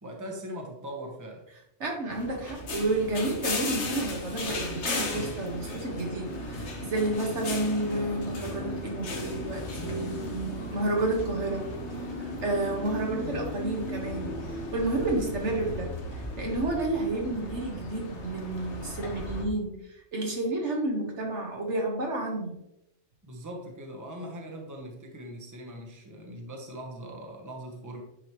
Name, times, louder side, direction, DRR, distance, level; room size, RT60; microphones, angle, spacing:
voice 1, 0.0-1.5 23.2-28.0, equal, 15° right, 1 dB, 1.1 m, -40 dB
voice 2, 1.8-11.7 12.4-19.7 20.1-22.5, right 2 dB, 70° right, 0 dB, 1.9 m, -30 dB
sound 1, 2.1-19.4, left 1 dB, 70° left, 1.5 m, -36 dB
9.6 x 5.1 x 3.0 m, 0.84 s
omnidirectional pair, 1.2 m